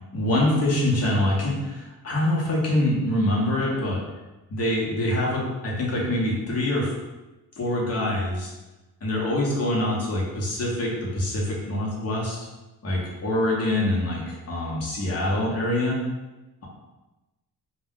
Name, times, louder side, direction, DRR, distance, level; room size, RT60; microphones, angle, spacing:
voice 1, 0.1-4.0 4.5-6.9 7.6-8.5 9.0-12.4 12.8-16.0, left 1 dB, 40° left, -4 dB, 0.9 m, -25 dB
2.4 x 2.2 x 3.6 m, 1.1 s
cardioid pair, 115°, 37 cm